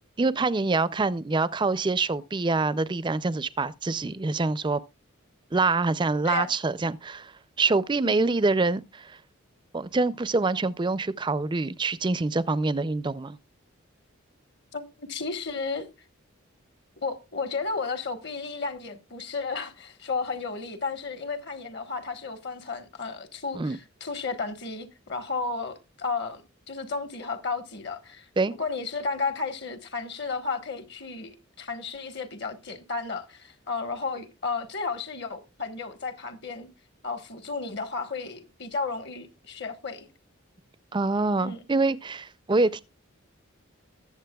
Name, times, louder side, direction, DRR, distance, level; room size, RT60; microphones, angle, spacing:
voice 1, 0.2-4.8 5.5-7.3 7.6-9.2 9.7-13.4 23.5-23.8 28.4-28.5 40.9-42.8, right 3 dB, 20° right, 0.4 m, -25 dB
voice 2, 14.7-15.9 17.0-36.7 37.0-40.1 41.4-41.6, left 4 dB, 55° left, 1.4 m, -33 dB
20.5 x 7.2 x 2.3 m
head